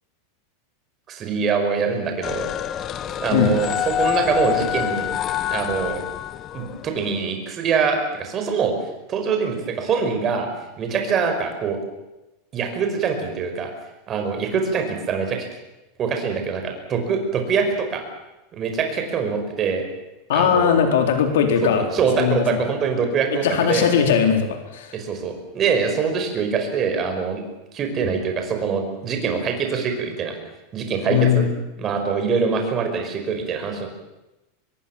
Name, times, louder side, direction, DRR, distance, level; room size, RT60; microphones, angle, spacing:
voice 1, 1.1-2.5 3.2-5.1 5.5-6.0 6.5-8.7 9.1-10.5 10.8-11.8 12.5-13.7 14.1-15.5 16.0-18.0 18.5-19.8 20.3-20.8 21.6-23.9 24.9-27.4 27.7-30.4 30.7-31.4 31.8-33.9, right 5 dB, 25° right, 4 dB, 5.1 m, -24 dB
sound 1, 2.2-7.1, left 10 dB, 25° left, 1.1 m, -26 dB
voice 2, 20.3-21.9 22.2-22.6 23.3-25.0 31.1-31.5, left 8 dB, 85° left, 5 dB, 4.1 m, -19 dB
25.0 x 21.5 x 7.3 m, 1.0 s
supercardioid pair, 165°, 0 cm